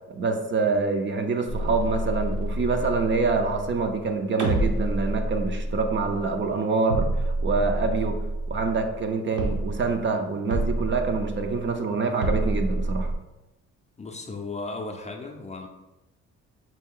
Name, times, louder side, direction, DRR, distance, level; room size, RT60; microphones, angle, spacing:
voice 1, 0.1-8.2 8.5-13.1, right 4 dB, 40° right, 5 dB, 0.5 m, -26 dB
sound 1, 1.5-4.1 4.4-6.5 6.9-9.1 9.4-10.1 10.5-11.7 12.2-13.2, right 1 dB, 75° right, 0.9 m, -28 dB
voice 2, 14.0-15.7, left 3 dB, 25° left, 2 dB, 0.5 m, -35 dB
4.3 x 2.3 x 3.7 m, 1.0 s
cardioid pair, 90°, 30 cm